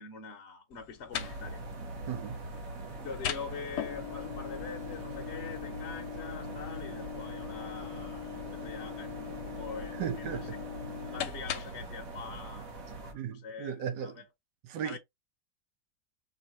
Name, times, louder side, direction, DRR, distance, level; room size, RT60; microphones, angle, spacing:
voice 1, 0.0-1.6 3.0-10.5 11.0-13.7 14.0-14.2 14.8-15.0, left 6 dB, 50° left, 1.0 m, -44 dB
sound 1, 0.7-11.9, left 11 dB, 75° left, 1.2 m, -41 dB
sound 2, 1.1-13.1, right 2 dB, 55° right, 1.4 m, -43 dB
voice 2, 2.1-2.4 9.9-10.6 13.1-14.2 14.6-15.0, right 8 dB, 85° right, 1.4 m, -36 dB
4.8 x 2.8 x 2.9 m
omnidirectional pair, 1.8 m